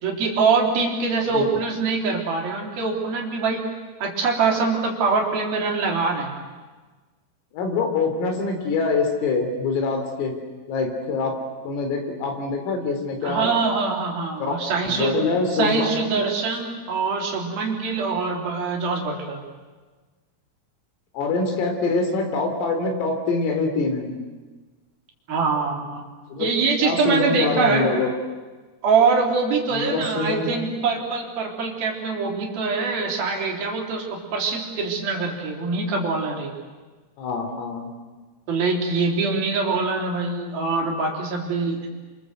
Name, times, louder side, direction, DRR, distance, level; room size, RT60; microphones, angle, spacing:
voice 1, 0.0-3.7 4.0-6.4 13.2-15.1 15.5-19.4 25.3-26.1 26.4-28.0 28.8-36.5 38.5-41.9, right 4 dB, 50° right, 0 dB, 5.2 m, -24 dB
voice 2, 7.5-10.3 10.7-11.4 11.6-13.6 14.4-14.5 14.9-15.9 21.1-24.1 26.3-26.5 26.8-28.1 29.7-30.5 37.2-37.9, left 3 dB, 90° left, 4 dB, 6.1 m, -24 dB
28.5 x 25.5 x 8.0 m, 1.3 s
omnidirectional pair, 5.8 m